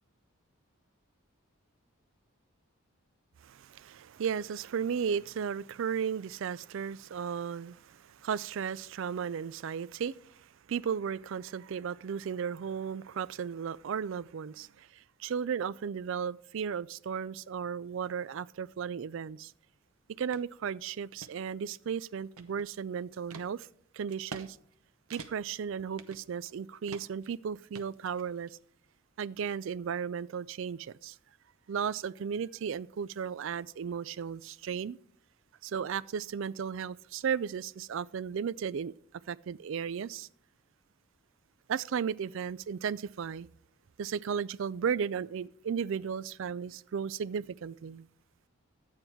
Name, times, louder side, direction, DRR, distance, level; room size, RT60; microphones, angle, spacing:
voice 1, 3.4-19.5 20.2-23.7 23.9-24.6 25.1-28.6 29.2-31.2 31.7-35.0 35.6-38.9 39.3-40.3 41.7-43.5 44.0-48.1, right 7 dB, 60° right, 0.3 m, -35 dB
sound 1, 20.3-20.5 20.9-21.3 21.9-22.8 23.3-23.5 24.1-24.5 24.7-24.8 25.1-25.6 26.0-26.6 26.9-27.3 27.7-28.5, right 4 dB, 80° right, 0.9 m, -46 dB
11.5 x 8.9 x 4.5 m
head